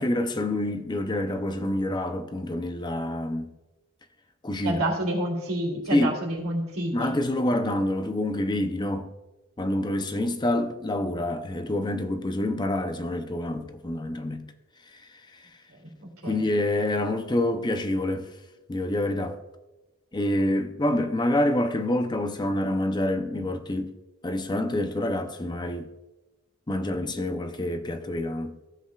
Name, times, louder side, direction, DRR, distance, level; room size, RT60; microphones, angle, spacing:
voice 1, 0.0-3.5 4.4-4.8 5.9-6.2 6.9-9.1 9.6-14.5 14.9-15.5 16.2-18.3 18.7-19.4 20.1-24.0 24.2-25.9 26.7-28.6, left 1 dB, 20° left, 0.5 m, -27 dB
voice 2, 4.6-7.1 15.7-16.4, right 1 dB, 80° right, 2.7 m, -29 dB
15.5 x 7.7 x 2.4 m
head